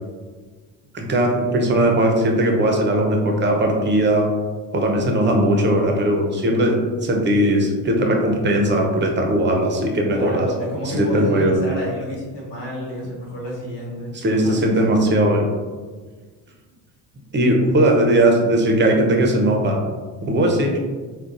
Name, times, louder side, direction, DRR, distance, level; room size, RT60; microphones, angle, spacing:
voice 1, 0.9-4.3 4.7-10.5 10.9-11.6 14.1-15.5 17.3-19.8 20.2-20.8, right 1 dB, 25° right, 1 dB, 0.7 m, -18 dB
voice 2, 10.1-14.9 17.8-18.0, equal, 80° left, -5 dB, 1.4 m, -30 dB
3.8 x 2.3 x 2.5 m, 1.4 s
cardioid pair, 90°, 43 cm